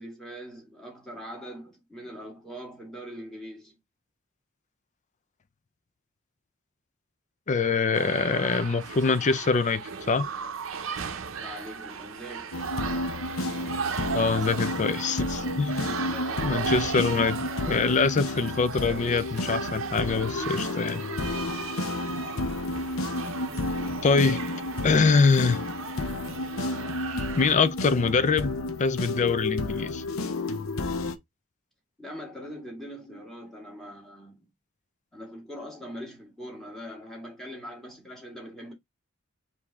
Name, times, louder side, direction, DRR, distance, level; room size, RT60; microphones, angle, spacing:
voice 1, 0.0-3.7 11.4-12.6 15.8-16.6 32.0-34.5 35.1-38.7, equal, ahead, 1.9 m, -42 dB
voice 2, 7.5-10.3 14.1-15.9 16.4-21.0 24.0-24.4 24.8-25.6 27.4-30.0, left 4 dB, 35° left, 0.4 m, -24 dB
sound 1, 7.9-27.6, right 6 dB, 70° right, 0.7 m, -36 dB
sound 2, 12.5-31.2, left 2 dB, 75° left, 0.7 m, -31 dB
4.9 x 2.7 x 3.5 m
head